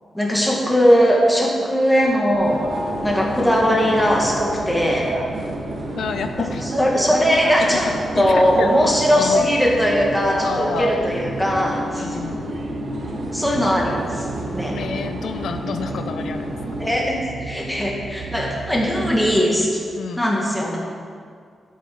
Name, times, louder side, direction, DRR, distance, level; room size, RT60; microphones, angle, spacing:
voice 1, 0.1-2.7 3.0-5.1 6.8-7.9 8.2-12.0 13.3-14.3 14.5-14.8 16.8-19.8 20.2-20.8, equal, 5° left, -3 dB, 2.0 m, -19 dB
sound 1, 2.0-19.5, right 4 dB, 90° right, 1.1 m, -37 dB
sound 2, 2.4-16.9, right 1 dB, 50° right, 1.8 m, -29 dB
voice 2, 6.0-6.7 7.6-7.8 8.1-9.5 10.4-11.0 11.9-12.5 14.7-16.5 20.0-20.3, left 6 dB, 80° left, 7 dB, 0.6 m, -29 dB
13.5 x 8.4 x 6.2 m, 2.2 s
wide cardioid pair, 175°, 0 cm